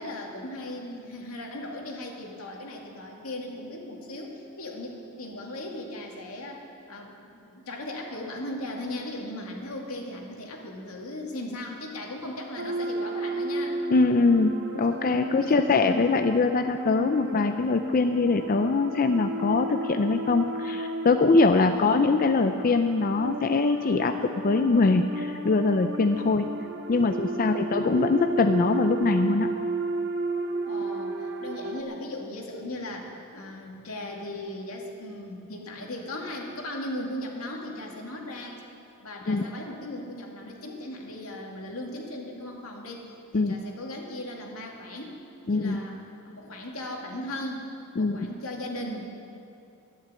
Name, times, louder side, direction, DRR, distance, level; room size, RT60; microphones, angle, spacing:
voice 1, 0.0-13.8 15.4-15.6 21.6-22.0 27.4-27.8 30.7-38.6 39.0-43.1 43.3-47.7 48.0-49.2, left 1 dB, 85° left, 0 dB, 2.3 m, -38 dB
sound 1, 12.6-31.8, right 2 dB, 55° right, 0.9 m, -33 dB
voice 2, 13.9-26.5 26.9-29.5 39.3-39.4 43.3-43.6 45.5-45.8 48.0-48.3, left 3 dB, 40° left, 7 dB, 0.4 m, -23 dB
12.0 x 10.5 x 8.4 m, 2.7 s
head